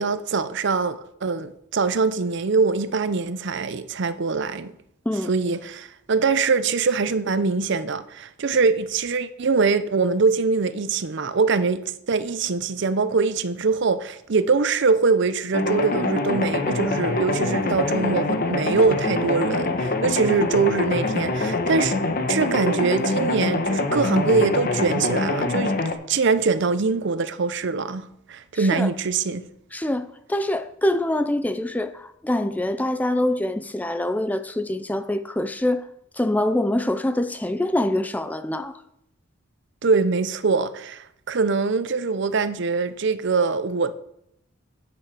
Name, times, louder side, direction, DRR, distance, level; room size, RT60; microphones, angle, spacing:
voice 1, 0.0-4.7 5.3-21.9 22.3-25.8 26.1-29.4 39.8-43.9, right 4 dB, 60° right, 0.6 m, -23 dB
sound 1, 15.5-25.9, left 2 dB, 45° left, 1.0 m, -24 dB
voice 2, 28.5-28.9 29.7-35.9 36.1-38.8, left 1 dB, 10° left, 0.4 m, -25 dB
9.0 x 8.8 x 4.9 m
head